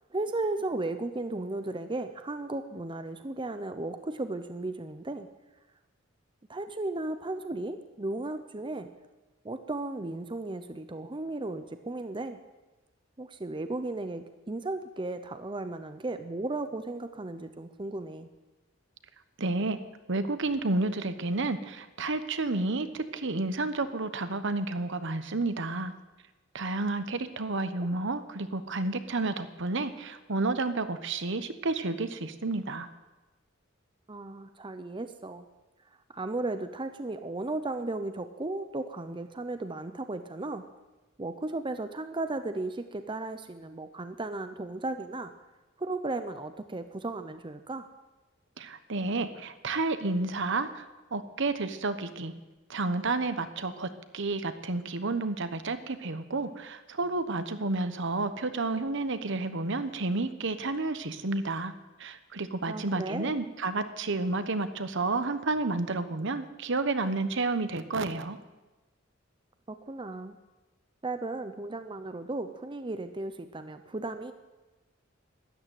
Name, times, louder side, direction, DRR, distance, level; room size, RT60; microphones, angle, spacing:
voice 1, 0.1-5.3 6.5-8.9 9.4-12.4 13.2-18.3 27.8-27.9 34.1-35.4 36.1-40.6 41.2-45.3 45.8-47.9 62.7-63.4 69.7-70.4 71.0-74.3, right 2 dB, 25° right, 9 dB, 0.7 m, -35 dB
voice 2, 19.4-19.8 20.1-25.9 26.5-32.9 48.6-50.8 51.1-52.3 52.7-61.7 62.0-68.4, right 3 dB, 65° right, 11 dB, 1.1 m, -31 dB
13.0 x 11.5 x 9.3 m, 1.1 s
head